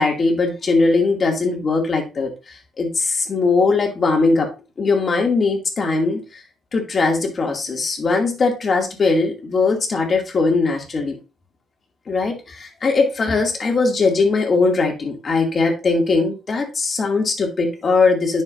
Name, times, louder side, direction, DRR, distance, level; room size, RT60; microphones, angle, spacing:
voice 1, 0.0-4.5 4.8-6.4 6.7-11.2 12.1-18.4, left 3 dB, 40° left, 2 dB, 2.4 m, -20 dB
9.6 x 6.7 x 2.6 m, 0.29 s
cardioid pair, 90°, 0 cm